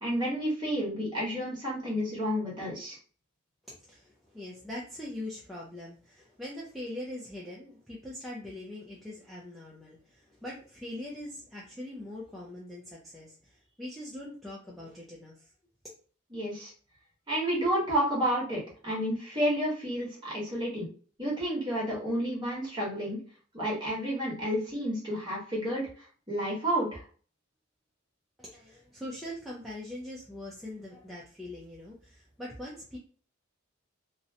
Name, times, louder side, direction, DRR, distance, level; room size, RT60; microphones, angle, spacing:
voice 1, 0.0-3.0 16.3-16.7 17.3-20.9 21.2-23.2 23.5-25.9 26.3-27.0, equal, 20° right, -5 dB, 1.0 m, -30 dB
voice 2, 3.6-15.5 28.4-33.0, left 1 dB, ahead, -6 dB, 0.4 m, -42 dB
2.6 x 2.1 x 2.7 m, 0.42 s
head